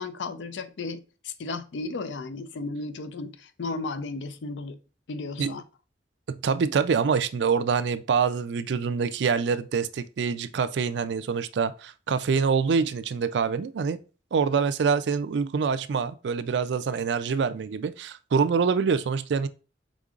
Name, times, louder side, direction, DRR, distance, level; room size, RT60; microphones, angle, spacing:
voice 1, 0.0-4.8 5.1-5.6, left 3 dB, 80° left, 0.5 m, -34 dB
voice 2, 6.3-14.0 14.3-19.5, right 5 dB, 70° right, 0.4 m, -25 dB
5.2 x 3.7 x 2.4 m
head